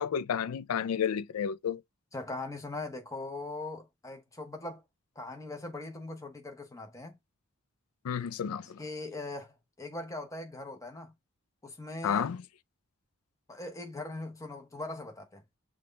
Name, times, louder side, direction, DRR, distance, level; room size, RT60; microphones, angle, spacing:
voice 1, 0.0-1.8 8.0-8.8 12.0-12.4, left 8 dB, 85° left, 0.4 m, -31 dB
voice 2, 2.1-4.8 5.2-7.2 8.8-11.1 11.6-12.3 13.5-15.4, left 2 dB, 15° left, 0.8 m, -40 dB
6.0 x 2.3 x 3.3 m
head